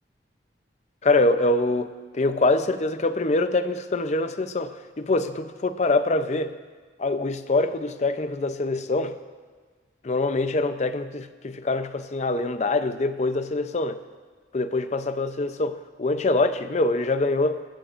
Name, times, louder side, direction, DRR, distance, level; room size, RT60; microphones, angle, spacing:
voice 1, 1.0-6.5 7.0-9.2 10.0-14.0 14.5-17.6, left 2 dB, 40° left, 10 dB, 0.5 m, -24 dB
18.0 x 14.0 x 2.5 m, 1.5 s
head